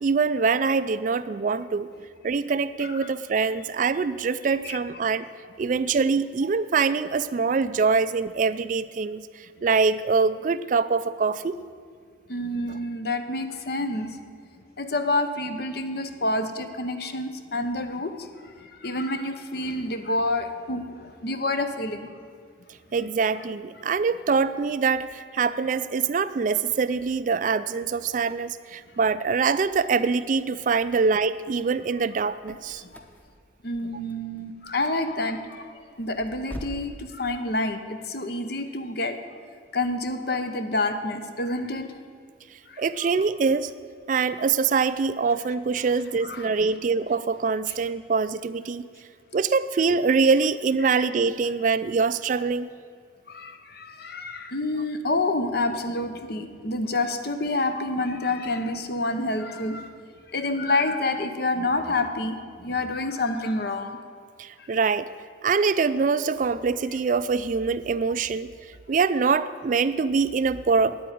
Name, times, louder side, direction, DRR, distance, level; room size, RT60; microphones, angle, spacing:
voice 1, 0.0-1.9 2.2-5.3 5.6-11.6 22.9-32.8 42.8-43.7 44.1-48.8 49.3-52.7 64.4-65.1 65.4-68.5 68.9-71.0, right 5 dB, 40° right, 14 dB, 0.3 m, -24 dB
voice 2, 12.3-14.2 14.8-22.1 32.8-33.0 33.6-35.7 36.0-39.2 39.7-41.9 42.7-43.1 46.2-46.5 47.7-47.8 50.8-51.1 53.3-59.9 60.3-64.0 64.6-64.7, left 2 dB, 55° left, 8 dB, 0.9 m, -28 dB
sound 1, 32.2-37.0, equal, 10° left, 0.8 m, -44 dB
9.5 x 8.5 x 9.2 m, 2.1 s
head